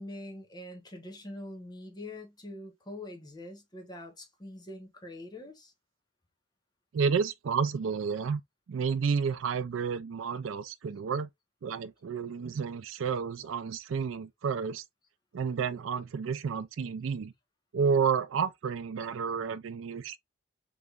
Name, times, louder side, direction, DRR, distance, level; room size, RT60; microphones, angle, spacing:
voice 1, 0.0-5.7, left 1 dB, 20° left, 1.0 m, -44 dB
voice 2, 6.9-8.4 8.7-11.3 11.6-14.8 15.3-17.3 17.7-20.2, right 6 dB, 80° right, 0.4 m, -30 dB
3.3 x 3.1 x 2.4 m
head